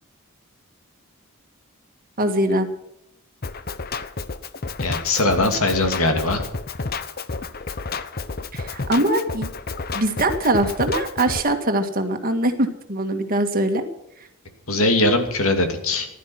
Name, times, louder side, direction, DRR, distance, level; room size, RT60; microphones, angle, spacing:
voice 1, 2.2-2.7 8.5-9.5 9.9-13.8, right 1 dB, 40° right, 6 dB, 1.8 m, -22 dB
Drum kit, 3.4-11.4, left 4 dB, 45° left, 0.8 m, -31 dB
voice 2, 4.8-6.4 14.7-16.1, left 2 dB, 70° left, 6 dB, 2.7 m, -20 dB
15.0 x 12.0 x 6.1 m, 0.82 s
head